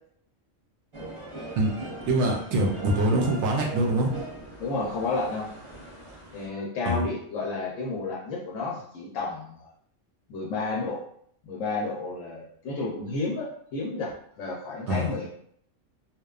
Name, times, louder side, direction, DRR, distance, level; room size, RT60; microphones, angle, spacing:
sound 1, 0.9-6.5, right 2 dB, 40° right, 0.4 m, -40 dB
voice 1, 2.0-4.1 6.8-7.0 14.9-15.1, right 1 dB, 70° right, 0 dB, 0.8 m, -24 dB
voice 2, 4.6-5.5 6.3-9.7 10.3-11.0 11.4-15.3, left 3 dB, 80° left, -3 dB, 1.0 m, -31 dB
2.8 x 2.1 x 2.3 m, 0.65 s
omnidirectional pair, 1.3 m